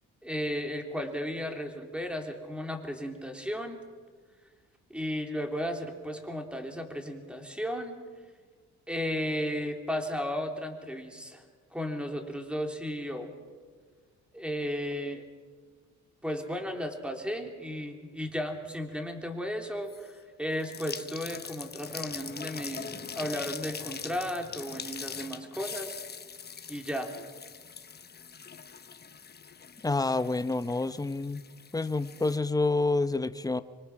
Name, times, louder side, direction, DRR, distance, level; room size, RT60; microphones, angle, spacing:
voice 1, 0.2-3.8 4.9-8.0 8.9-11.4 11.7-13.3 14.3-15.2 16.2-22.9 23.1-25.9 26.7-27.1, equal, 5° right, 4 dB, 3.4 m, -34 dB
sound 1, 19.9-20.2 20.5-32.4, left 6 dB, 35° left, 1.1 m, -42 dB
voice 2, 29.8-31.4 31.7-33.6, left 3 dB, 10° left, 12 dB, 0.9 m, -28 dB
25.5 x 24.5 x 6.1 m, 1.5 s
cardioid pair, 90°, 30 cm